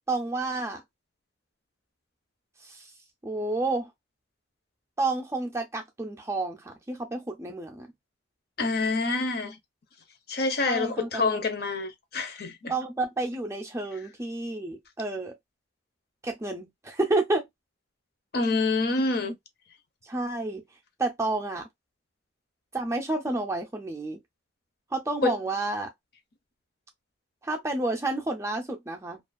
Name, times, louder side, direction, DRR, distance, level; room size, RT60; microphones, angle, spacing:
voice 1, 0.1-0.8 2.6-2.9 3.2-3.9 5.0-7.9 10.6-11.4 12.7-15.3 16.2-17.5 20.0-20.6 21.0-21.7 22.7-24.2 24.9-25.9 27.4-29.2, right 2 dB, 15° right, 0.4 m, -30 dB
voice 2, 8.6-9.6 10.3-12.7 18.3-19.4 25.2-25.3, left 3 dB, 50° left, 0.6 m, -27 dB
2.4 x 2.4 x 2.4 m
head